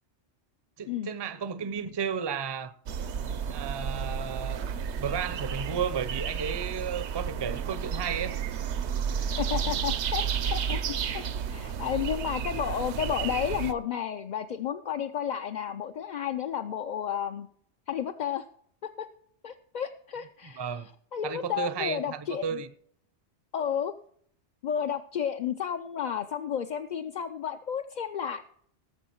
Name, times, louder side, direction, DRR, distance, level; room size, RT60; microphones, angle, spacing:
voice 1, 0.8-2.7 3.5-4.7 4.9-8.4 9.1-9.4 9.7-9.8 20.4-20.9 21.2-22.7, right 7 dB, 30° right, 0.5 m, -33 dB
sound 1, 2.9-13.7, right 7 dB, 75° right, 1.0 m, -32 dB
voice 2, 9.4-17.5 17.9-18.5 18.8-19.1 19.4-20.7 21.1-22.6 23.5-23.9 24.6-28.4, left 9 dB, 55° left, 0.5 m, -32 dB
17.5 x 7.0 x 4.5 m
omnidirectional pair, 1.2 m